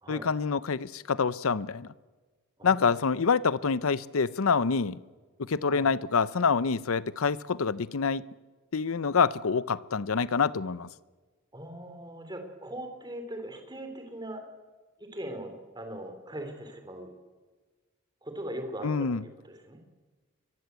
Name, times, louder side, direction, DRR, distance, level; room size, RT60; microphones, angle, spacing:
voice 1, 0.1-1.9 2.6-5.0 5.5-8.2 8.7-10.9 18.8-19.2, left 5 dB, 80° left, 18 dB, 0.7 m, -26 dB
voice 2, 2.6-3.1 5.6-5.9 11.5-14.4 15.0-17.1 18.2-19.1 19.4-19.8, right 1 dB, 20° right, 6 dB, 3.2 m, -40 dB
23.5 x 22.0 x 8.2 m, 1.3 s
head